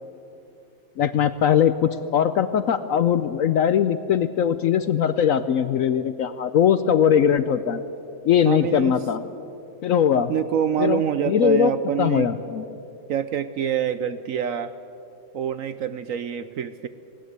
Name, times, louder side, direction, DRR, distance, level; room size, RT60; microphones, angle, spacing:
voice 1, 1.0-7.8 8.2-9.2 9.8-10.3 10.8-11.0 11.3-11.7 12.0-12.7, left 8 dB, 65° left, 12 dB, 0.8 m, -20 dB
voice 2, 8.4-8.9 10.1-12.3 13.1-14.7 15.3-16.9, right 9 dB, 65° right, 12 dB, 0.8 m, -26 dB
20.0 x 18.0 x 8.0 m, 2.9 s
omnidirectional pair, 1.9 m